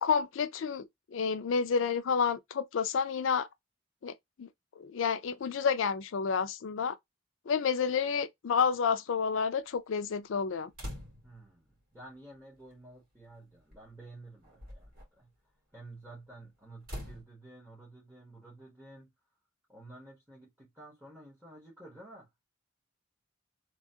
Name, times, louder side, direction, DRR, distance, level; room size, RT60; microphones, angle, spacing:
voice 1, 0.0-3.5 4.0-4.5 4.8-7.0 7.5-10.7, left 6 dB, 80° left, 0.4 m, -30 dB
sound 1, 10.7-11.5 12.7-12.8 13.7-13.9 14.4-15.0 16.8-17.2, left 1 dB, 50° right, 2.0 m, -43 dB
voice 2, 11.2-15.3 15.7-19.1 19.7-22.3, right 2 dB, 10° right, 1.3 m, -51 dB
3.1 x 2.3 x 2.7 m
head